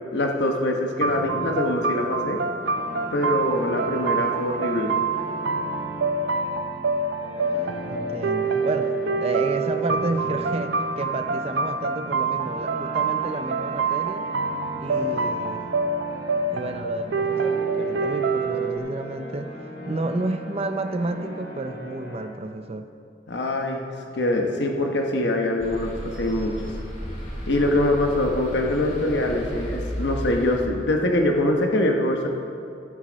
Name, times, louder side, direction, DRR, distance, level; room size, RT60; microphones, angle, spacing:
voice 1, 0.1-2.4 3.1-4.9 23.3-23.8 24.1-26.6 27.5-32.3, left 1 dB, 80° left, 2 dB, 1.0 m, -23 dB
sound 1, 1.0-18.8, right 4 dB, 80° right, 0.6 m, -26 dB
sound 2, 2.6-22.2, left 1 dB, 60° left, 2.9 m, -39 dB
voice 2, 7.9-14.3 14.8-15.6 16.5-19.5 19.9-22.9, right 2 dB, 35° right, 8 dB, 0.4 m, -31 dB
sound 3, 25.6-30.6, equal, 45° left, 2.2 m, -34 dB
14.0 x 8.4 x 4.0 m, 2.6 s
head